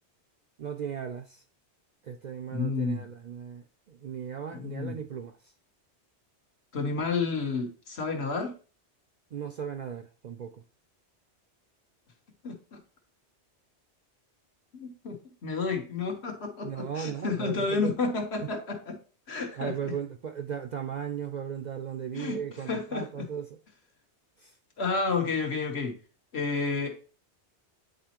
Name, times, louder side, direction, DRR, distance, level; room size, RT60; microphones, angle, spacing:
voice 1, 0.6-1.4 2.0-5.5 9.3-10.6 16.6-18.0 18.4-18.5 19.5-23.6 24.4-24.6, right 8 dB, 55° right, 0.5 m, -37 dB
voice 2, 2.5-3.0 4.5-5.0 6.7-8.5 12.4-12.8 14.7-15.2 15.4-19.0 19.3-19.7 22.1-22.4 22.7-23.1 24.8-25.9 26.3-27.0, left 4 dB, 65° left, 1.4 m, -30 dB
9.1 x 4.1 x 2.9 m
omnidirectional pair, 1.2 m